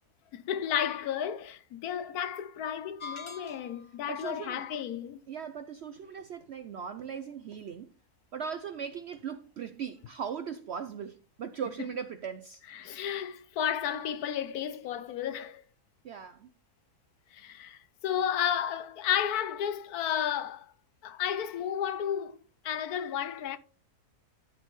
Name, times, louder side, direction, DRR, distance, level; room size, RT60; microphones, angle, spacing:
voice 1, 0.3-5.2 12.7-15.6 17.3-20.7 21.0-22.4 22.6-23.6, left 9 dB, 75° left, 1.2 m, -32 dB
sound 1, 3.0-4.0, left 4 dB, 50° left, 0.3 m, -43 dB
voice 2, 4.1-4.6 5.3-7.9 8.3-12.6 16.0-16.5, right 7 dB, 70° right, 0.6 m, -39 dB
12.5 x 5.3 x 3.2 m
omnidirectional pair, 1.6 m